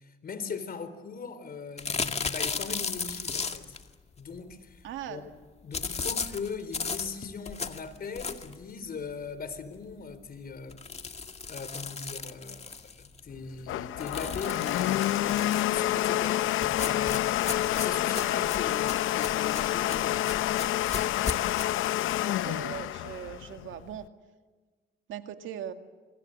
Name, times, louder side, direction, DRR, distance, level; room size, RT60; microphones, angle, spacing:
voice 1, 0.0-3.8 4.2-5.3 5.6-10.8 11.5-20.4, left 5 dB, 50° left, 12 dB, 4.0 m, -40 dB
sound 1, 1.8-3.8 5.7-8.6 9.1-9.2 9.5-9.6 9.9-10.0 10.7-13.2 14.0-15.8 16.6-21.6, left 4 dB, 30° left, 2.1 m, -35 dB
voice 2, 4.8-5.3 22.4-24.0 25.1-25.7, right 10 dB, 80° right, 7 dB, 2.2 m, -39 dB
Domestic sounds home sounds, 13.3-24.0, left 13 dB, 80° left, 0.7 m, -28 dB
27.5 x 25.0 x 8.0 m, 1.4 s
cardioid pair, 90°, 20 cm